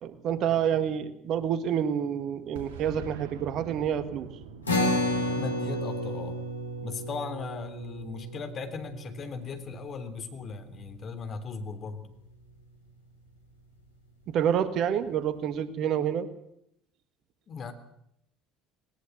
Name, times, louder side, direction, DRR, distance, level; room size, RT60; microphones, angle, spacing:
voice 1, 0.0-4.3 14.3-16.3, right 9 dB, 50° right, 12 dB, 1.6 m, -28 dB
Boom, 2.5-7.2, right 6 dB, 70° right, 2.8 m, -45 dB
sound 1, 4.7-11.3, left 1 dB, 85° left, 3.7 m, -32 dB
voice 2, 5.1-6.4 6.8-12.1 17.5-17.7, left 5 dB, 40° left, 8 dB, 3.4 m, -38 dB
20.0 x 19.5 x 8.0 m, 0.76 s
figure-of-eight pair, 60°, 0 cm